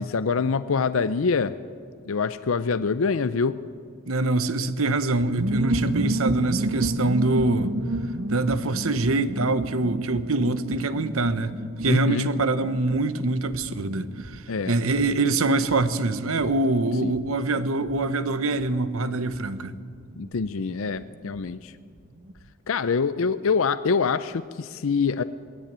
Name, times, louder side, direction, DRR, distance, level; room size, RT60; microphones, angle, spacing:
voice 1, 0.0-1.5 2.1-3.6 11.8-12.3 14.5-14.7 17.0-17.1 20.2-21.7 22.7-25.2, left 5 dB, 65° left, 0.5 m, -25 dB
voice 2, 4.1-7.7 8.3-11.5 11.8-19.8, right 2 dB, 70° right, 1.0 m, -24 dB
sound 1, 5.2-21.5 21.7-21.8 22.0-22.5, right 1 dB, 55° right, 0.8 m, -32 dB
19.5 x 17.0 x 8.8 m
head